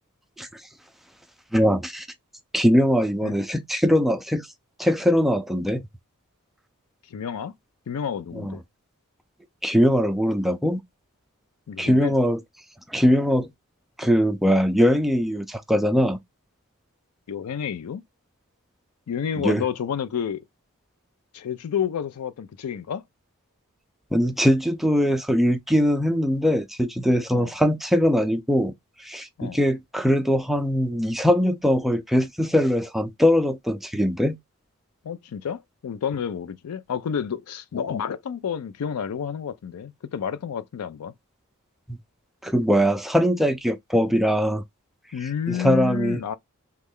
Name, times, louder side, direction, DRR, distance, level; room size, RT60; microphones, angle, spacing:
voice 1, 1.5-2.1 2.5-4.5 4.8-5.9 8.4-8.5 9.6-10.8 11.8-12.4 12.9-13.5 14.0-16.2 19.4-19.6 24.1-28.7 29.0-34.4 41.9-42.0 42.4-44.6 45.5-46.2, equal, ahead, 0.4 m, -21 dB
voice 2, 7.1-7.5 7.9-8.6 11.7-12.1 17.3-18.0 19.1-20.4 21.3-23.0 27.3-27.5 29.4-29.6 35.0-41.1 45.1-46.3, left 7 dB, 85° left, 0.4 m, -30 dB
3.1 x 2.3 x 3.5 m
head